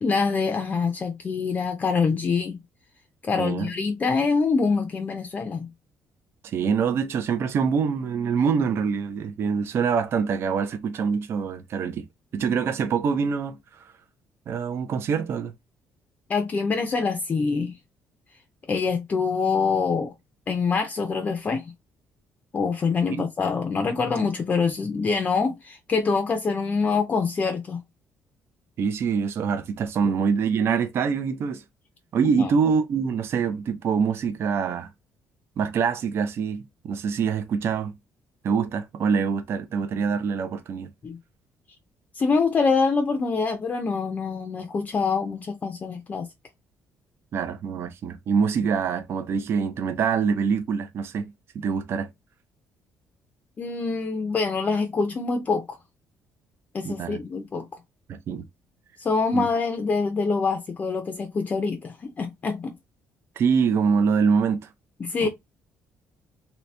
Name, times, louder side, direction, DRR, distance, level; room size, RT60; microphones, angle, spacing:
voice 1, 0.0-2.6 3.2-5.7 16.3-17.7 18.7-20.1 20.5-21.7 22.5-27.8 32.4-32.5 41.0-41.2 42.1-46.3 53.6-55.8 56.7-57.7 59.0-62.7 65.0-65.3, left 4 dB, 30° left, 0.5 m, -25 dB
voice 2, 3.4-3.7 6.4-12.0 12.3-13.6 14.5-15.5 23.1-23.2 28.8-31.6 32.1-34.9 35.6-37.9 38.4-40.9 47.3-52.1 56.8-57.2 58.1-58.4 59.3-59.5 63.4-64.7 65.2-65.3, right 6 dB, 50° right, 0.5 m, -25 dB
2.8 x 2.7 x 3.2 m
cardioid pair, 135°, 5 cm